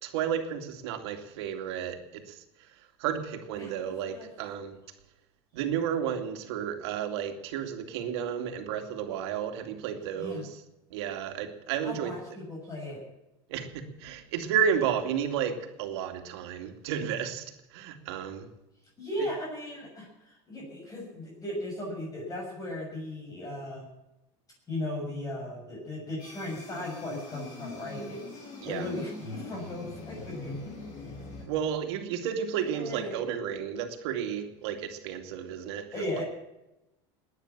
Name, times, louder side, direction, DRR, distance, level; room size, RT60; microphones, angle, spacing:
voice 1, 0.0-2.4 3.0-4.8 5.5-10.6 10.9-12.1 13.5-18.5 28.6-28.9 31.5-35.9, right 8 dB, 85° right, 5 dB, 2.5 m, -32 dB
voice 2, 3.6-4.3 10.2-10.4 11.8-13.0 19.0-23.9 24.7-28.2 28.6-30.7 32.7-33.2 35.9-36.2, left 1 dB, 25° left, -2 dB, 7.0 m, -37 dB
sound 1, 26.2-31.4, left 2 dB, 55° left, 7.6 m, -42 dB
19.0 x 10.0 x 7.4 m, 0.91 s
supercardioid pair, 125°, 14 cm